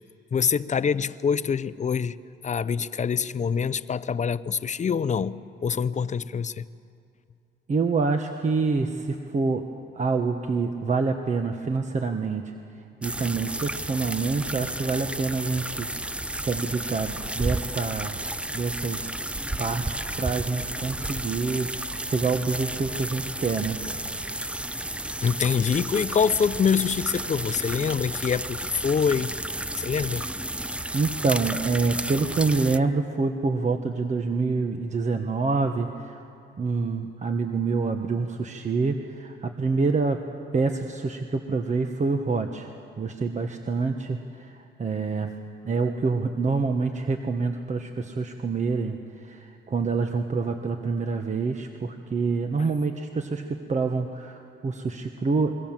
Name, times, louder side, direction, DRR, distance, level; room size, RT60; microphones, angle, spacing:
voice 1, 0.3-2.2 2.4-6.6 25.2-29.3 29.8-30.3, left 6 dB, 35° left, 0.7 m, -25 dB
voice 2, 7.7-9.6 9.9-12.5 13.0-18.2 18.5-19.2 19.6-23.8 30.9-36.2 36.6-40.2 40.5-42.7 43.0-45.3 45.6-53.4 53.7-55.5, right 4 dB, 35° right, 1.4 m, -27 dB
sound 1, 13.0-32.8, right 1 dB, 5° right, 0.6 m, -32 dB
27.0 x 22.5 x 7.5 m
cardioid pair, 90°, 20 cm